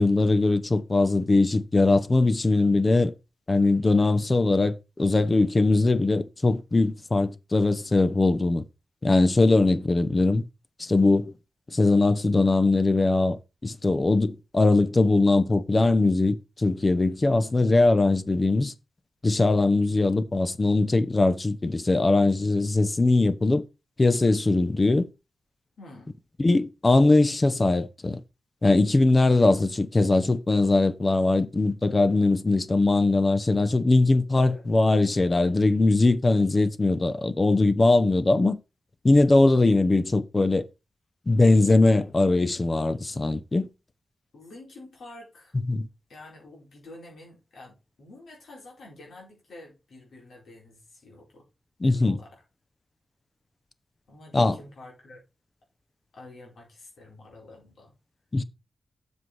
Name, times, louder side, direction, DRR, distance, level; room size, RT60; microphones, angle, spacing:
voice 1, 0.0-3.1 3.5-8.6 9.0-10.4 10.8-11.3 11.7-18.7 19.2-23.6 24.0-25.1 26.4-28.2 28.6-38.6 39.0-40.7 41.3-43.7 45.7-45.9 51.8-52.2 54.3-54.6 58.3-58.4, left 2 dB, 35° left, 0.8 m, -21 dB
voice 2, 25.8-26.2 34.4-34.7 44.3-45.5 46.1-51.4 51.8-52.4 54.1-55.2 56.1-57.9, left 2 dB, 75° left, 4.8 m, -48 dB
7.4 x 6.3 x 4.7 m
cardioid pair, 65°, 0 cm